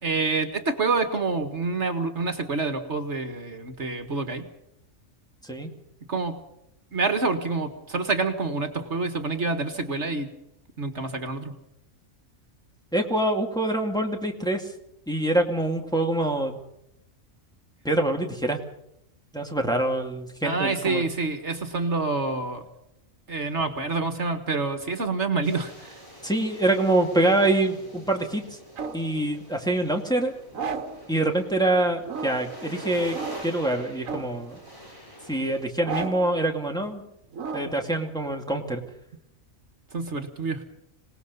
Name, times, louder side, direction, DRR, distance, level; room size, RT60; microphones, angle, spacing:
voice 1, 0.0-4.5 6.1-6.4 6.9-10.3 10.8-11.5 20.4-22.6 23.3-26.0 37.6-37.7 39.9-40.6, right 3 dB, 60° right, 7 dB, 2.0 m, -27 dB
voice 2, 12.9-14.7 15.1-16.6 17.8-18.6 19.3-21.0 26.2-28.4 28.9-30.3 31.1-33.2 33.4-34.6 35.3-37.1 37.5-38.8, right 1 dB, 5° left, 1 dB, 2.4 m, -25 dB
sound 1, 25.4-35.6, equal, 25° left, 6.3 m, -45 dB
sound 2, 27.1-29.1 30.5-31.1 32.0-32.6 33.1-33.6 34.0-34.5 35.8-36.4 37.3-37.9, right 5 dB, 80° right, 1.7 m, -35 dB
26.0 x 19.0 x 5.4 m, 0.80 s
omnidirectional pair, 1.4 m